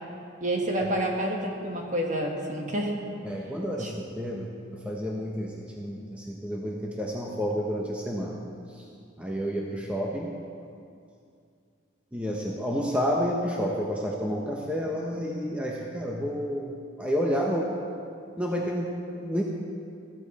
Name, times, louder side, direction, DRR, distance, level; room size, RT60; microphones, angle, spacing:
voice 1, 0.4-3.0 3.8-3.9, right 1 dB, 40° right, 1 dB, 1.5 m, -28 dB
voice 2, 3.2-4.5 4.8-8.4 9.2-10.3 12.1-17.7 18.4-19.4, equal, 5° right, -2 dB, 0.9 m, -30 dB
14.5 x 13.5 x 4.2 m, 2.4 s
head